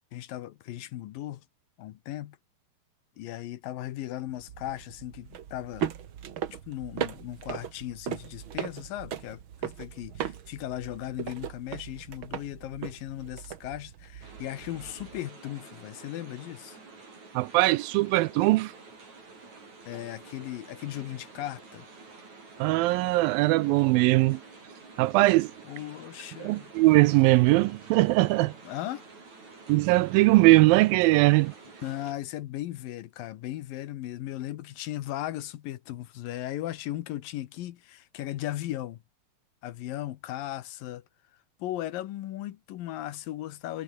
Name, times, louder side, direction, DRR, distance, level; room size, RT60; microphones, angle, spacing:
voice 1, 0.1-1.4 1.8-2.4 3.2-5.9 6.7-16.8 19.9-21.9 25.7-26.7 28.6-29.0 31.8-39.0 39.6-41.0 41.6-43.8, left 14 dB, 75° left, 2.7 m, -37 dB
sound 1, 4.3-15.2, right 9 dB, 65° right, 1.2 m, -38 dB
sound 2, 14.2-32.1, right 4 dB, 50° right, 7.9 m, -49 dB
voice 2, 17.4-18.7 22.6-24.4 25.0-25.5 26.4-28.5 29.7-31.5, right 20 dB, 80° right, 2.2 m, -21 dB
omnidirectional pair, 4.4 m